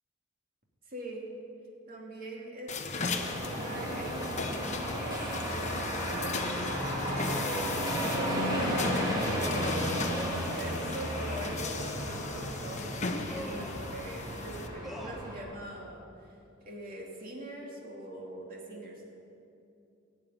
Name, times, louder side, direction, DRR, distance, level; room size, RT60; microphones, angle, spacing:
voice 1, 0.9-1.3 1.9-6.4 7.1-16.0 16.6-19.1, right 1 dB, 45° right, -2 dB, 2.8 m, -42 dB
sound 1, 2.7-14.7, left 4 dB, 35° left, 1.0 m, -38 dB
sound 2, 3.1-15.4, equal, 20° right, 2.9 m, -34 dB
sound 3, 4.8-5.1 6.4-7.6 8.5-8.8 10.1-10.6 11.1-11.6 12.2-12.6 13.3-13.9 14.8-15.2, equal, ahead, 1.4 m, -45 dB
16.5 x 7.4 x 9.3 m, 2.7 s
head